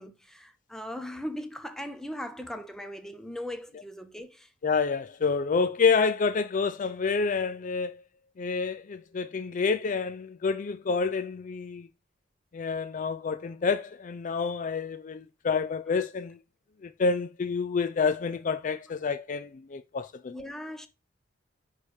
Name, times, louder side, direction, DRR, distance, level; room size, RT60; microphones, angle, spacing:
voice 1, 0.0-4.5 20.3-20.9, equal, 5° left, 0.7 m, -39 dB
voice 2, 4.6-8.0 8.4-11.9 12.5-16.4 16.8-20.3, left 5 dB, 40° left, 0.4 m, -28 dB
9.7 x 3.3 x 5.1 m
head